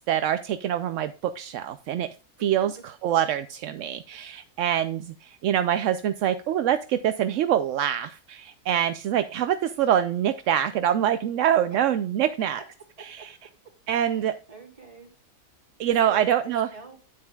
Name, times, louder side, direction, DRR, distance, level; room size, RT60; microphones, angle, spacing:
voice 1, 0.1-2.1 2.4-12.6 13.0-13.3 13.9-14.3 15.8-16.7, right 10 dB, 70° right, 10 dB, 0.8 m, -25 dB
voice 2, 2.4-2.7 11.7-11.8 13.2-13.3 14.1-15.1 16.0-17.0, right 5 dB, 20° right, -2 dB, 3.6 m, -45 dB
9.5 x 9.3 x 2.3 m, 0.35 s
omnidirectional pair, 1.7 m